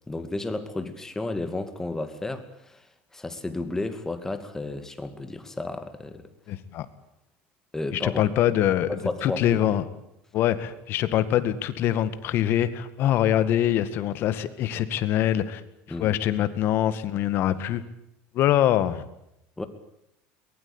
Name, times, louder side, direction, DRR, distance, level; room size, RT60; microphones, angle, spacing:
voice 1, 0.1-2.9 3.1-6.2 7.7-8.3 8.9-9.6 15.9-16.2 19.6-19.7, left 2 dB, 10° left, 10 dB, 2.4 m, -32 dB
voice 2, 6.5-6.9 7.9-8.9 9.2-9.8 10.3-15.6 16.0-17.8 18.3-19.0, left 11 dB, 50° left, 13 dB, 2.0 m, -24 dB
23.0 x 20.5 x 8.9 m, 0.81 s
supercardioid pair, 135°, 5 cm